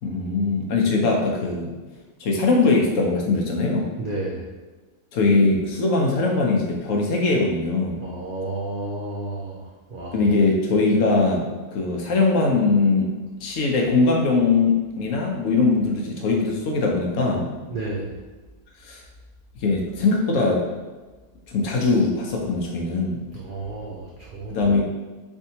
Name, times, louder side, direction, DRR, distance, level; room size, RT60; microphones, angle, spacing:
voice 1, 0.0-1.8 2.2-3.9 5.1-8.0 10.1-13.1 13.4-17.5 18.8-19.0 19.6-20.6 21.5-23.2 24.5-24.8, left 3 dB, 65° left, -1 dB, 0.9 m, -21 dB
voice 2, 4.0-4.5 8.0-10.3 17.7-18.1 23.3-24.7, right 2 dB, 85° right, -3 dB, 0.4 m, -32 dB
4.3 x 3.5 x 2.8 m, 1.3 s
omnidirectional pair, 1.6 m